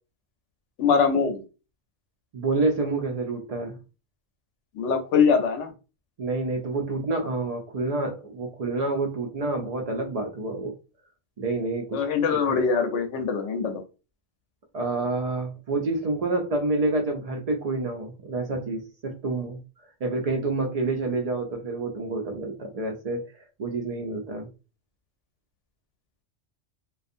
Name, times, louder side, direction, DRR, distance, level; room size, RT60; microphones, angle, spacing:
voice 1, 0.8-1.4 4.8-5.7 11.9-13.8, left 6 dB, 75° left, 6 dB, 0.9 m, -23 dB
voice 2, 2.3-3.8 6.2-10.7 11.4-12.0 12.5-12.6 14.7-19.6 20.0-23.3 23.6-24.5, right 3 dB, 80° right, 2 dB, 0.3 m, -28 dB
2.5 x 2.3 x 2.5 m, 0.31 s
omnidirectional pair, 1.2 m